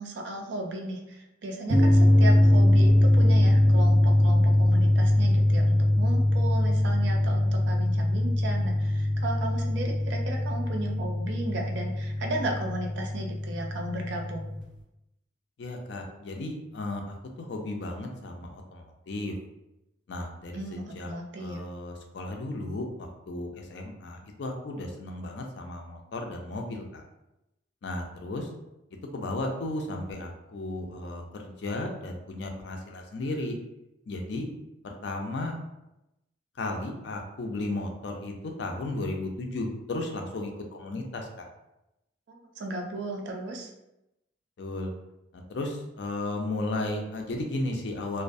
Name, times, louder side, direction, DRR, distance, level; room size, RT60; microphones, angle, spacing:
voice 1, 0.0-14.4 20.5-21.6 42.3-43.7, right 1 dB, 60° right, 2 dB, 0.4 m, -35 dB
sound 1, 1.7-14.6, left 1 dB, ahead, 1.2 m, -22 dB
voice 2, 15.6-17.0 17.4-19.3 20.1-21.1 21.4-27.0 27.8-28.5 29.1-33.5 34.1-34.5 34.8-35.5 36.6-38.3 38.6-41.5 44.6-44.9 45.3-48.2, left 2 dB, 60° left, 2 dB, 0.4 m, -34 dB
2.3 x 2.1 x 2.5 m, 0.89 s
head